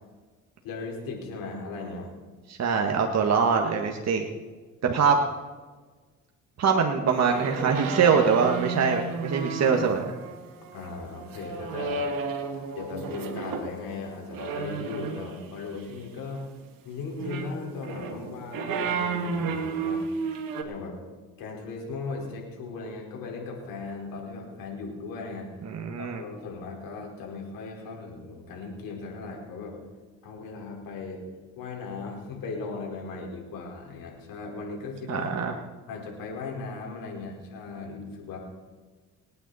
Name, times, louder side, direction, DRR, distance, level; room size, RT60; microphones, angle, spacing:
voice 1, 0.6-2.1 10.7-12.1 12.7-16.5 16.8-20.1 20.6-21.0 21.4-25.7 26.0-29.8 30.2-31.3 31.6-35.3 35.9-38.4, left 4 dB, 80° left, 0 dB, 4.7 m, -37 dB
voice 2, 2.5-4.3 4.8-5.2 6.6-10.2 25.6-26.2 35.1-35.5, right 6 dB, 50° right, 2 dB, 1.7 m, -23 dB
sound 1, 7.2-13.7 14.3-15.5 17.1-20.6, right 4 dB, 75° right, 2.2 m, -32 dB
26.5 x 9.5 x 4.2 m, 1.3 s
supercardioid pair, 75°, 34 cm